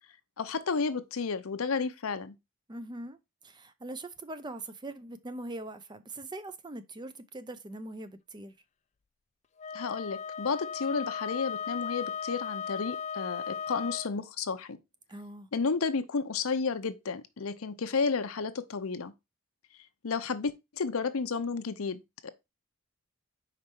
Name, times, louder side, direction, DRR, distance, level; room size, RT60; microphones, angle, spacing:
voice 1, 0.4-2.3 9.7-14.8 15.5-19.1 20.0-22.3, left 5 dB, 85° left, 0.7 m, -32 dB
voice 2, 2.7-3.2 3.4-8.5 15.1-15.5, right 2 dB, 20° right, 0.5 m, -42 dB
Wind instrument woodwind instrument, 9.6-14.1, left 7 dB, 35° left, 0.3 m, -36 dB
5.0 x 4.3 x 4.4 m
head